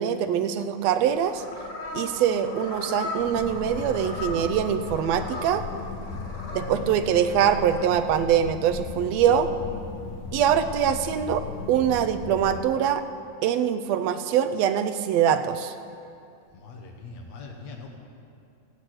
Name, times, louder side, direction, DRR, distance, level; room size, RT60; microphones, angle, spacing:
voice 1, 0.0-1.4 1.9-5.6 6.5-9.5 10.3-13.0 13.4-15.7, right 9 dB, 75° right, 9 dB, 1.6 m, -23 dB
sound 1, 0.9-7.9, left 2 dB, 45° left, 1.1 m, -38 dB
sound 2, 3.2-12.6, left 4 dB, 85° left, 2.4 m, -37 dB
voice 2, 6.7-7.1 16.5-17.9, left 4 dB, 65° left, 1 dB, 2.3 m, -42 dB
15.0 x 8.1 x 7.8 m, 2.5 s
omnidirectional pair, 3.4 m